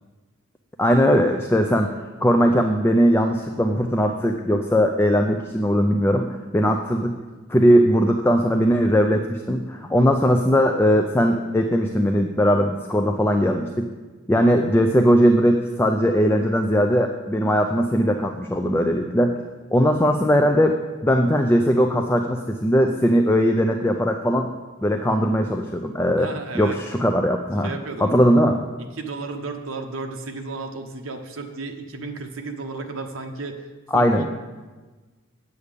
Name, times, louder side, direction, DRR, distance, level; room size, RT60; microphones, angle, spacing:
voice 1, 0.8-1.9 2.2-7.2 7.5-13.9 14.3-19.3 19.7-20.8 21.0-24.5 24.8-26.3 26.5-27.7 28.0-28.6 33.9-34.2, equal, 10° left, 4 dB, 0.4 m, -19 dB
voice 2, 26.2-26.8 27.6-28.1 28.9-34.3, right 3 dB, 75° right, 4 dB, 1.0 m, -33 dB
8.3 x 8.2 x 5.1 m, 1.3 s
head